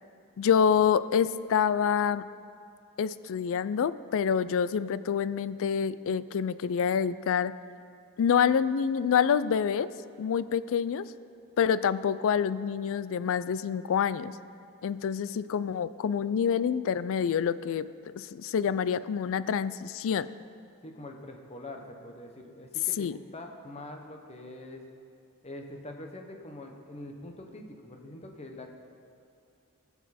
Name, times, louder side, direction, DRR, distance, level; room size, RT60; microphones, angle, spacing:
voice 1, 0.4-2.2 3.0-7.5 8.2-9.9 10.2-11.1 11.6-14.4 14.8-17.9 18.2-20.3 23.0-23.2, left 7 dB, 60° left, 16 dB, 0.4 m, -27 dB
voice 2, 20.8-24.8 25.4-28.7, left 1 dB, 30° left, 3 dB, 1.1 m, -44 dB
19.5 x 7.2 x 4.2 m, 2.4 s
head